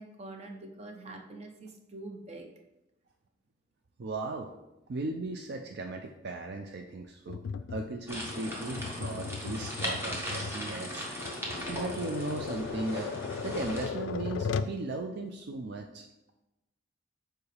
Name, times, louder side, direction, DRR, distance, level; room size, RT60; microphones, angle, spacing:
voice 1, 0.0-2.5, right 2 dB, 35° right, 3 dB, 0.8 m, -45 dB
voice 2, 4.0-4.5 4.9-7.4 7.7-13.2 13.4-16.1, right 2 dB, 60° right, 4 dB, 0.4 m, -37 dB
Tap, 7.3-14.8, left 5 dB, 80° left, 0.3 m, -37 dB
sound 1, 8.1-13.9, equal, 15° right, 1.3 m, -38 dB
7.0 x 4.5 x 3.3 m, 0.95 s
head